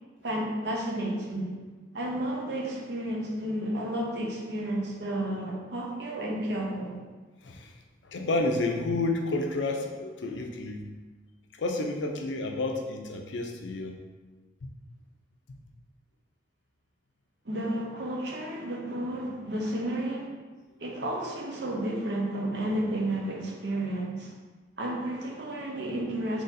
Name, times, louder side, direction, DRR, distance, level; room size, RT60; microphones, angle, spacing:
voice 1, 0.2-1.5 1.9-7.0 17.4-20.3 20.8-24.3 24.8-26.4, right 1 dB, 65° right, -1 dB, 0.8 m, -32 dB
voice 2, 8.0-10.9 11.6-14.0, left 2 dB, 85° left, 3 dB, 0.5 m, -30 dB
3.9 x 3.0 x 4.0 m, 1.3 s
head